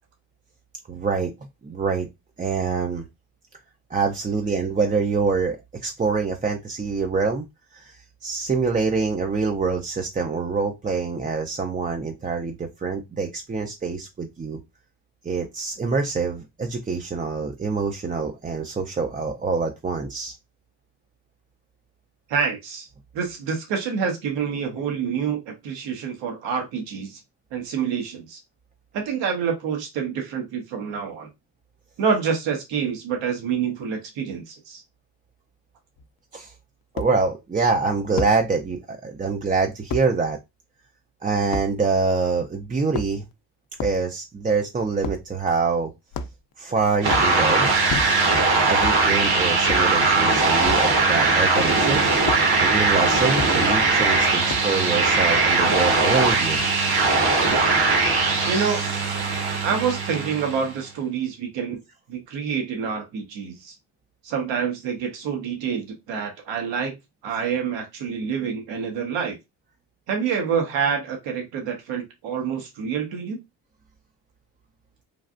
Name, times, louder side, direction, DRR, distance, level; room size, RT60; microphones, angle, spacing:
voice 1, 0.9-1.3 1.6-2.1 2.4-3.1 3.9-7.5 7.7-14.6 15.2-20.3 36.3-36.5 36.9-40.4 41.2-43.2 43.8-45.9 46.6-47.7 48.6-52.0 52.6-56.6, right 4 dB, 20° right, 3 dB, 0.4 m, -25 dB
voice 2, 22.3-22.9 23.1-27.2 27.5-28.4 28.9-31.3 32.0-34.8 58.4-58.8 59.6-61.8 62.1-63.7 64.2-67.0 67.2-69.4 70.1-73.4, right 6 dB, 75° right, 3 dB, 1.1 m, -27 dB
sound 1, 36.0-36.1 37.0-37.1 38.2-38.4 39.9-40.1 41.5-41.7 42.8-43.3 43.8-44.0 45.0-45.3 46.1-46.5 47.0-47.3 47.9-48.4 48.8-49.0 49.7-49.9 50.6-50.9 52.3-52.4 53.4-53.5 54.5-54.8, left 3 dB, 50° left, 0.5 m, -30 dB
sound 2, 47.0-60.7, right 3 dB, 55° right, 1.2 m, -20 dB
3.2 x 2.3 x 2.5 m, 0.21 s
supercardioid pair, 60°, 45 cm